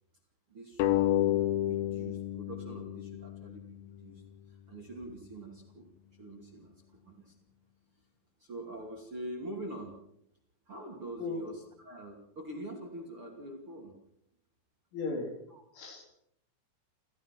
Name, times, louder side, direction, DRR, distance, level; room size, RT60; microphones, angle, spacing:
voice 1, 0.5-5.9 6.2-7.3 8.4-10.0 10.7-14.0 15.5-15.6, right 1 dB, 35° right, 1 dB, 2.6 m, -45 dB
sound 1, 0.8-4.0, left 13 dB, 85° left, 3.9 m, -30 dB
voice 2, 11.2-11.5 14.9-15.3 15.7-16.2, left 3 dB, 70° left, 2 dB, 6.3 m, -36 dB
28.5 x 15.5 x 6.0 m, 0.76 s
omnidirectional pair, 5.9 m